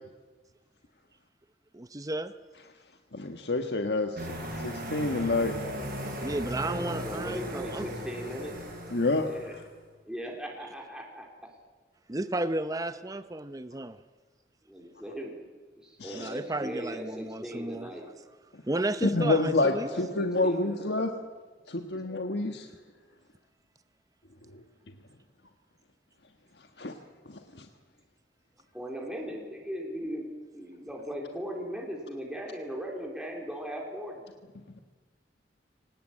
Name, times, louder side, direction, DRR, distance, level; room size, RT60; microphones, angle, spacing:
voice 1, 1.7-2.3 6.2-7.9 12.1-14.0 16.1-17.9 18.7-19.9, right 2 dB, 20° right, 11 dB, 0.7 m, -33 dB
voice 2, 3.1-4.2 4.6-5.5 8.9-9.3 16.0-16.3 19.0-21.1 21.7-22.7 26.8-26.9, left 2 dB, 75° left, 5 dB, 1.5 m, -27 dB
sound 1, 4.2-9.7, equal, 60° right, 6.7 m, -37 dB
voice 3, 6.7-8.5 9.1-9.6 10.1-11.3 14.7-15.4 15.8-18.1 19.6-20.9 21.9-22.0 28.7-34.3, equal, 5° right, -1 dB, 3.6 m, -38 dB
24.0 x 19.0 x 8.9 m, 1.3 s
head